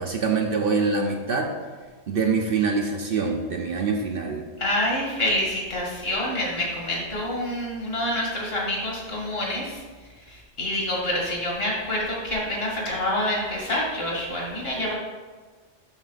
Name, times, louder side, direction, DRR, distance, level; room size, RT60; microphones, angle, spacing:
voice 1, 0.0-1.5 2.1-4.4, right 4 dB, 60° right, 2 dB, 0.9 m, -24 dB
voice 2, 4.6-9.8 10.3-14.9, left 1 dB, 60° left, -4 dB, 2.3 m, -27 dB
11.5 x 3.9 x 4.1 m, 1.4 s
omnidirectional pair, 1.2 m